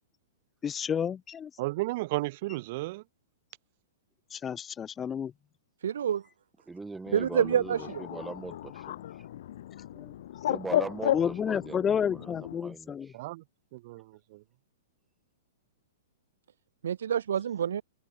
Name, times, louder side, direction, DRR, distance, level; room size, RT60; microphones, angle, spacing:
voice 1, 0.6-1.5 4.3-5.3 9.9-10.1 11.1-13.1, left 8 dB, 20° left, 0.6 m, -31 dB
voice 2, 1.6-3.0 13.1-13.4 13.7-14.4, right 20 dB, 50° right, 3.9 m, -33 dB
voice 3, 5.8-6.2 7.1-8.0 16.8-17.8, right 9 dB, 75° right, 2.0 m, -27 dB
voice 4, 6.7-9.0 10.5-13.2, right 3 dB, 10° right, 6.0 m, -40 dB
Bird, 7.1-12.6, left 12 dB, 65° left, 5.0 m, -34 dB
hypercardioid pair, 135°, 0 cm